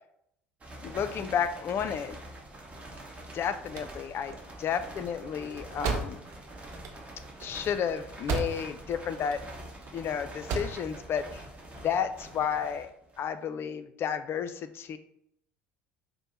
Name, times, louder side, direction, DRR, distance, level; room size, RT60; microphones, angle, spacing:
sound 1, 0.6-13.4, right 1 dB, 20° right, 1.1 m, -45 dB
voice 1, 0.8-2.2 3.3-6.2 7.4-9.4 9.9-11.4 11.8-12.9 13.2-15.0, left 8 dB, 40° left, 10 dB, 0.4 m, -32 dB
sound 2, 3.6-8.9 9.2-9.9 10.3-10.9, right 4 dB, 55° right, 0.6 m, -35 dB
5.1 x 2.1 x 4.3 m, 0.74 s
figure-of-eight pair, 65°, 6 cm